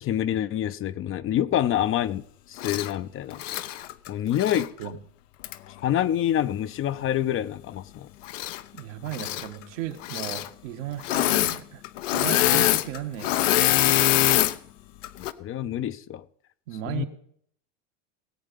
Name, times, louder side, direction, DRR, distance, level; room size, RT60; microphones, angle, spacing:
voice 1, 0.0-2.2 2.5-3.4 4.1-4.7 5.7-8.1 12.5-12.6 15.2-16.2 16.9-17.1, left 11 dB, 35° left, 0.6 m, -27 dB
Engine / Mechanisms, 2.6-2.9 3.3-4.7 5.4-5.5 8.2-8.8 9.1-9.5 10.0-10.5 11.0-11.6 11.8-14.5 15.0-15.3, left 14 dB, 80° left, 0.8 m, -24 dB
voice 2, 8.7-13.5 16.7-17.1, right 12 dB, 75° right, 1.6 m, -35 dB
18.5 x 8.1 x 5.3 m
supercardioid pair, 105°, 37 cm